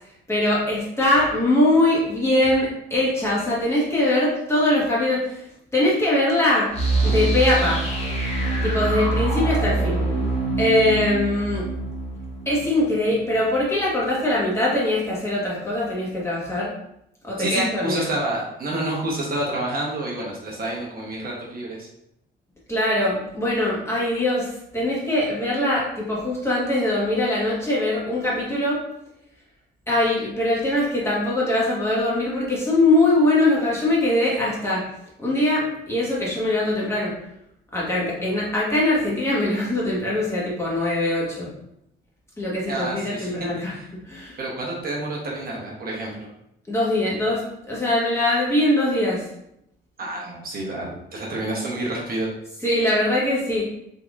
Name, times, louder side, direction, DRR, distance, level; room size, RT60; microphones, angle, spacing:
voice 1, 0.3-5.4 5.7-6.7 7.0-7.8 8.6-10.0 10.6-11.7 12.4-16.7 17.2-18.0 22.7-28.8 29.9-34.8 35.2-37.1 37.7-41.5 42.4-43.8 44.1-44.4 46.7-49.2 52.6-53.6, left 1 dB, 15° left, -6 dB, 1.4 m, -22 dB
sound 1, 6.7-13.5, right 2 dB, 35° left, 1.3 m, -25 dB
voice 2, 17.4-21.9 42.7-43.9 44.4-46.3 50.0-52.3, right 1 dB, 50° right, -3 dB, 1.0 m, -29 dB
3.7 x 2.8 x 2.5 m, 0.79 s
cardioid pair, 90°, 20 cm